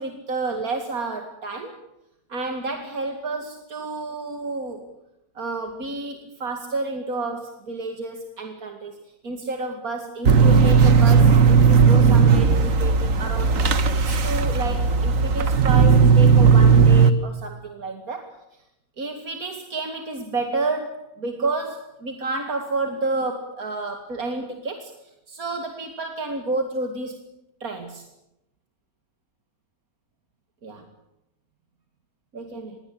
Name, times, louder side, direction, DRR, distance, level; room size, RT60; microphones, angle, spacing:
voice 1, 0.0-1.8 2.3-4.9 5.3-9.0 9.2-18.4 19.0-24.9 25.3-27.2 27.6-28.1 30.6-30.8 32.3-32.8, right 3 dB, 85° right, 5 dB, 2.7 m, -30 dB
sound 1, 10.3-17.1, right 5 dB, 65° right, 1.8 m, -16 dB
26.5 x 21.5 x 8.6 m, 0.85 s
omnidirectional pair, 1.5 m